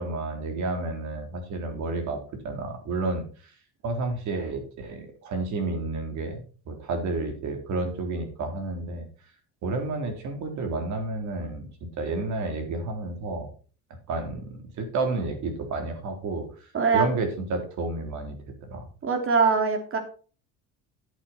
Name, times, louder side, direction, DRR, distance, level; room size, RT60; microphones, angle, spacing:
voice 1, 0.0-2.2 2.4-3.2 3.8-9.1 9.6-11.7 12.0-13.5 14.1-16.5 16.9-18.9, right 3 dB, 60° right, 5 dB, 3.6 m, -30 dB
voice 2, 16.7-17.0 19.0-20.0, right 5 dB, 40° right, 6 dB, 3.0 m, -22 dB
10.5 x 8.5 x 4.3 m, 0.38 s
cardioid pair, 115°, 32 cm